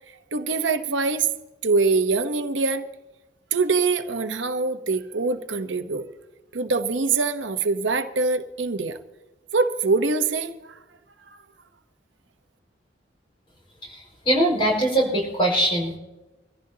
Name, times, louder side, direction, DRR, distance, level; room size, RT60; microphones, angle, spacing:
voice 1, 0.3-1.3 1.6-2.9 3.5-6.1 6.5-9.0 9.5-10.8, right 4 dB, 85° right, 8 dB, 1.0 m, -24 dB
voice 2, 14.2-16.0, right 1 dB, 30° left, -1 dB, 5.1 m, -21 dB
24.0 x 15.0 x 2.8 m, 1.1 s
head